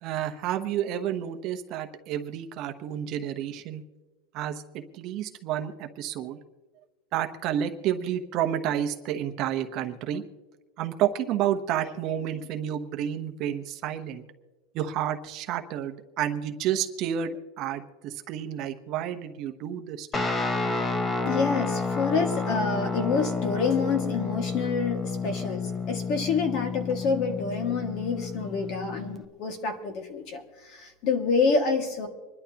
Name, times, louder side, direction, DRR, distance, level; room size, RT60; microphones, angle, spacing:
voice 1, 0.0-3.8 4.3-6.4 7.1-10.2 10.8-14.2 14.7-20.3, right 10 dB, 35° right, 6 dB, 0.9 m, -30 dB
Guitar, 20.1-29.2, left 4 dB, 15° left, 0.8 m, -30 dB
voice 2, 21.3-32.1, left 4 dB, 45° left, 5 dB, 2.0 m, -27 dB
26.0 x 11.5 x 2.9 m, 1.2 s
supercardioid pair, 160°, 0 cm